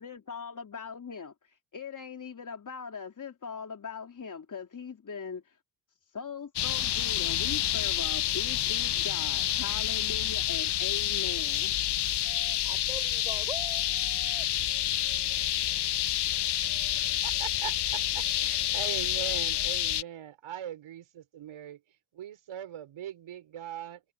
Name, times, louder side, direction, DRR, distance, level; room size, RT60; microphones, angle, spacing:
voice 1, 0.0-5.6 6.0-11.8, left 5 dB, 35° left, 3.3 m, -40 dB
sound 1, 6.6-20.0, left 12 dB, 55° left, 0.8 m, -29 dB
voice 2, 12.2-14.5, right 1 dB, 10° right, 6.2 m, -44 dB
voice 3, 17.2-21.8 22.1-24.0, right 10 dB, 70° right, 5.9 m, -41 dB
cardioid pair, 85°, 50 cm